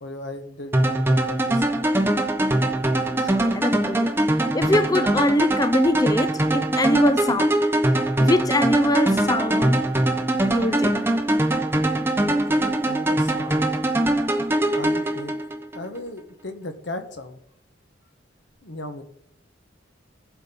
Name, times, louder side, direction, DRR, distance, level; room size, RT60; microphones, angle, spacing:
voice 1, 0.0-2.1 5.4-5.5 12.3-13.7 14.7-15.3 15.7-17.4 18.6-19.0, left 2 dB, 65° left, 1.5 m, -37 dB
sound 1, 0.7-15.8, right 1 dB, 10° right, 0.9 m, -22 dB
voice 2, 3.2-4.1 4.5-7.5 8.2-9.9 10.4-11.0, left 1 dB, 20° left, 0.5 m, -23 dB
17.5 x 7.7 x 5.4 m
head